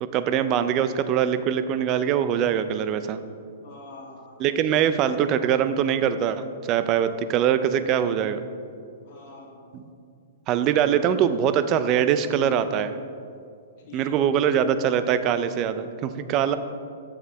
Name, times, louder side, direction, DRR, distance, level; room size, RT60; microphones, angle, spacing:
voice 1, 0.0-3.2 4.4-8.5 9.7-9.8 10.5-12.9 13.9-16.6, right 9 dB, 30° right, 11 dB, 0.4 m, -23 dB
voice 2, 3.6-4.4 4.7-5.2 9.0-9.6 13.8-14.4 16.5-16.6, left 1 dB, 45° left, -6 dB, 2.1 m, -44 dB
8.3 x 7.2 x 3.3 m, 2.3 s
hypercardioid pair, 140°, 0 cm